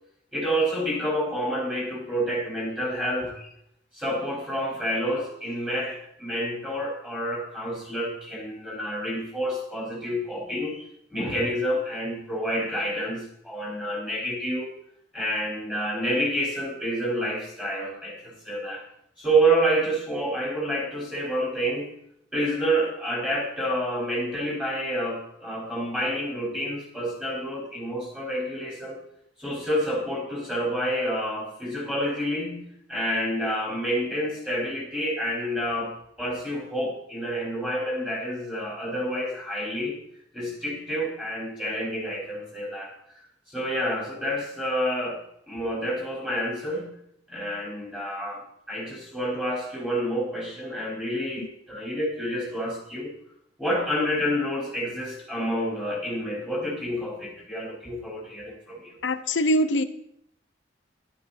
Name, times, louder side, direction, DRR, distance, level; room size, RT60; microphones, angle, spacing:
voice 1, 0.3-3.5 3.9-14.7 15.1-18.8 19.2-21.9 22.3-29.0 29.4-40.0 40.3-42.9 43.5-46.9 47.3-48.4 48.7-53.1 53.6-59.0, equal, 5° right, -3 dB, 5.3 m, -28 dB
voice 2, 59.0-59.8, equal, 90° left, 11 dB, 0.9 m, -23 dB
12.5 x 11.0 x 4.4 m, 0.73 s
head